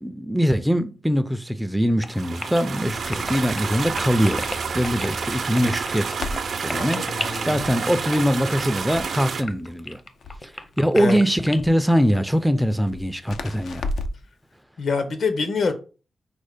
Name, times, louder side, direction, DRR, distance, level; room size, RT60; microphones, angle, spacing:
voice 1, 0.0-4.5 4.7-6.2 6.6-10.0 10.4-10.5 10.8-13.9, equal, ahead, 0.4 m, -22 dB
sound 1, 2.0-11.6, left 3 dB, 40° left, 0.7 m, -34 dB
sound 2, 2.1-9.4, right 5 dB, 65° right, 0.5 m, -29 dB
Crackle, 2.8-14.3, left 2 dB, 85° left, 0.4 m, -37 dB
voice 2, 6.7-7.6 10.9-11.2 14.8-15.7, left 4 dB, 70° left, 0.9 m, -25 dB
5.2 x 2.1 x 4.8 m
wide cardioid pair, 105°, 0 cm